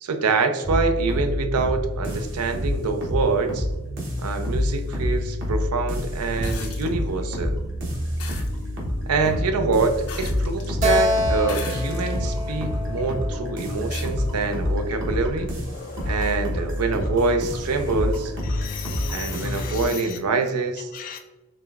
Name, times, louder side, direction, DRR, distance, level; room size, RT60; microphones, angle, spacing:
voice 1, 0.0-3.7 4.2-7.6 9.1-15.5 16.1-18.3 19.1-20.9, right 4 dB, 85° right, 7 dB, 0.5 m, -25 dB
sound 1, 0.6-19.9, left 1 dB, 55° right, 1.0 m, -28 dB
sound 2, 6.4-6.9 8.2-8.5 10.1-10.7 11.4-12.2 12.8-12.9 13.9-14.1 15.6-15.7, left 6 dB, 80° left, 0.7 m, -37 dB
Keyboard (musical), 10.8-14.3, left 1 dB, 30° right, 0.6 m, -27 dB
voice 2, 15.7-16.4 18.4-20.2 20.9-21.2, left 8 dB, 40° left, 4 dB, 0.3 m, -37 dB
4.8 x 3.5 x 2.3 m, 1.1 s
head